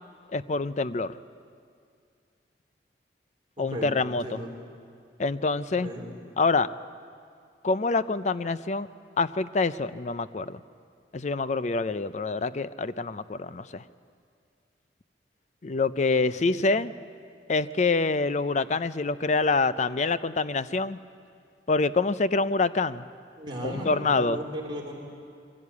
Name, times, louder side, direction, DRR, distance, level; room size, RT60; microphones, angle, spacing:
voice 1, 0.3-1.2 3.6-4.4 5.2-5.9 6.4-6.7 7.6-8.9 9.2-10.6 11.1-13.8 15.6-16.9 17.5-21.0 21.7-23.0 23.6-24.4, left 3 dB, 40° left, 14 dB, 0.5 m, -26 dB
voice 2, 3.6-4.5 5.8-6.1 16.2-16.7 23.4-24.9, equal, 25° right, -3 dB, 3.4 m, -36 dB
23.0 x 16.0 x 8.4 m, 2.3 s
head